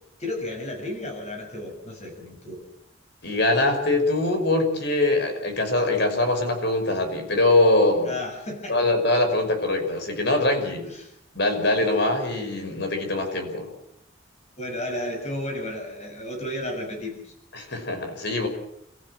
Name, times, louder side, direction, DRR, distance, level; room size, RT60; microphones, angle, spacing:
voice 1, 0.2-2.6 8.0-8.8 10.8-11.1 11.8-11.9 14.6-17.3, left 1 dB, 35° left, 2 dB, 6.9 m, -33 dB
voice 2, 3.2-8.1 8.7-10.9 11.3-13.7 17.5-18.5, left 2 dB, 60° left, 5 dB, 5.5 m, -23 dB
29.0 x 15.0 x 7.6 m, 0.78 s
head